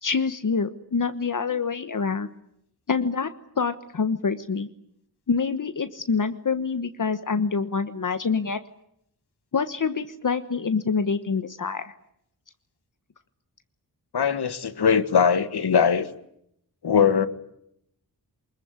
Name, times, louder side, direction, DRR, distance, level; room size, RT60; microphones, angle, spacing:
voice 1, 0.0-2.3 2.9-3.3 3.6-4.7 5.3-8.6 9.5-11.9, left 5 dB, 50° left, 1.2 m, -26 dB
voice 2, 14.1-16.1 16.8-17.3, left 7 dB, 70° left, 1.8 m, -20 dB
24.0 x 21.5 x 9.6 m
wide cardioid pair, 130°, 40 cm